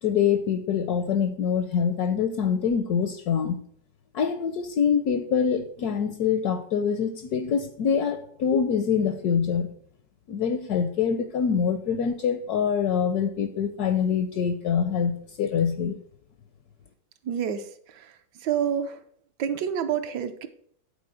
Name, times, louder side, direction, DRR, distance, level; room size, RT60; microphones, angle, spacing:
voice 1, 0.0-3.6 4.1-9.7 10.3-16.0, left 7 dB, 70° left, 9 dB, 1.0 m, -25 dB
voice 2, 17.2-18.1 18.4-19.0 19.4-20.5, right 8 dB, 70° right, 8 dB, 1.2 m, -28 dB
8.6 x 4.1 x 6.2 m, 0.63 s
omnidirectional pair, 2.0 m